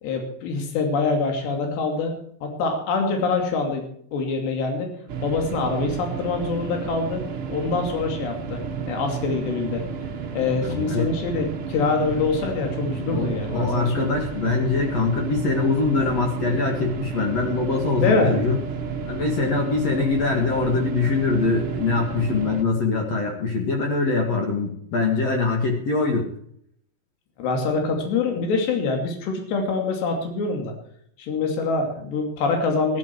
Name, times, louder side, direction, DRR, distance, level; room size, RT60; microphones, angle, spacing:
voice 1, 0.0-3.9 4.1-4.9 5.2-7.2 7.5-9.8 10.3-14.2 17.9-18.4 27.4-30.7 31.2-33.0, left 4 dB, 75° left, 3 dB, 4.8 m, -25 dB
sound 1, 5.1-22.6, right 6 dB, 85° right, 1.2 m, -31 dB
voice 2, 10.6-11.1 13.1-18.6 19.1-26.3, left 4 dB, 50° left, 2 dB, 2.4 m, -23 dB
14.0 x 13.0 x 4.6 m, 0.67 s
omnidirectional pair, 5.0 m